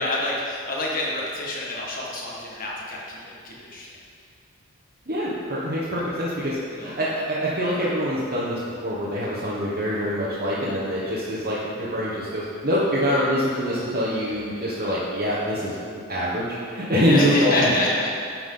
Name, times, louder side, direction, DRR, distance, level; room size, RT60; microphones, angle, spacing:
voice 1, 0.0-3.9 6.0-6.1 6.7-6.9 17.0-18.2, left 2 dB, 40° left, -4 dB, 1.6 m, -27 dB
voice 2, 5.1-15.7 16.1-17.7, equal, 40° right, -8 dB, 1.3 m, -25 dB
11.0 x 6.0 x 3.9 m, 2.3 s
head